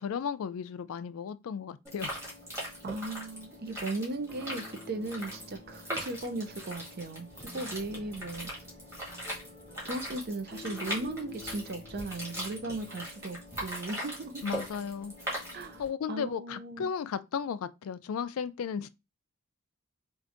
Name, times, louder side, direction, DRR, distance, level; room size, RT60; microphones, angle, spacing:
voice 1, 0.0-2.1 14.4-15.4 15.8-18.9, left 7 dB, 75° left, 0.3 m, -35 dB
sound 1, 1.8-15.9, equal, 10° right, 1.6 m, -40 dB
voice 2, 2.8-7.3 7.5-8.5 9.8-14.4 15.5-15.8 16.1-16.9, right 2 dB, 45° right, 0.5 m, -37 dB
sound 2, 4.1-13.0, left 2 dB, 5° left, 0.6 m, -51 dB
4.5 x 2.5 x 2.5 m
head